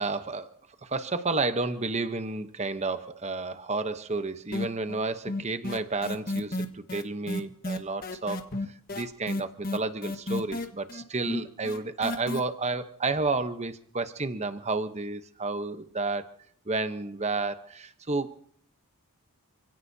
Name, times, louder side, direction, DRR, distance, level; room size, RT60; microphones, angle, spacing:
voice 1, 0.0-8.4 8.9-16.3 16.7-18.4, right 3 dB, 30° right, 10 dB, 0.9 m, -31 dB
sound 1, 4.5-5.0 5.3-12.4, left 2 dB, 40° left, 1.4 m, -32 dB
29.0 x 16.5 x 2.8 m, 0.62 s
head